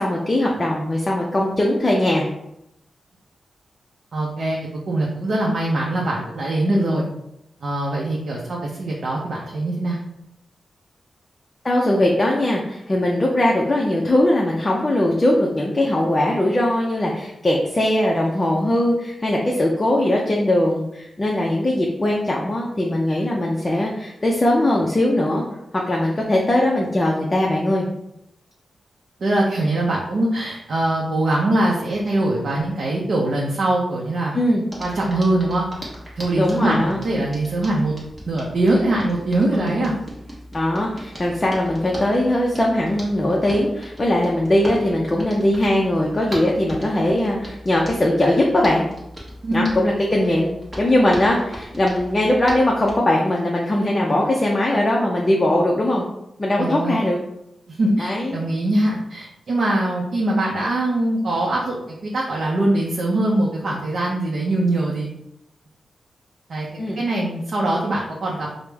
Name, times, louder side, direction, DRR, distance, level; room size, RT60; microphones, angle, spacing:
voice 1, 0.0-2.3 6.7-7.0 11.6-25.4 25.7-27.9 34.3-34.6 36.4-37.0 39.5-39.8 40.5-48.9 49.5-50.5 50.8-56.0 56.4-57.2 58.0-58.4 66.8-67.0, left 1 dB, 20° left, -2 dB, 0.4 m, -20 dB
voice 2, 4.1-4.6 4.9-7.0 7.6-10.0 29.2-34.3 34.8-35.7 36.2-37.9 38.3-39.9 49.4-49.7 56.6-57.0 57.7-65.1 66.5-66.7 67.0-68.6, right 1 dB, 55° right, -3 dB, 0.5 m, -22 dB
Hands, 34.7-53.0, equal, 15° right, 1.0 m, -39 dB
4.8 x 2.0 x 3.3 m, 0.82 s
wide cardioid pair, 165°, 0 cm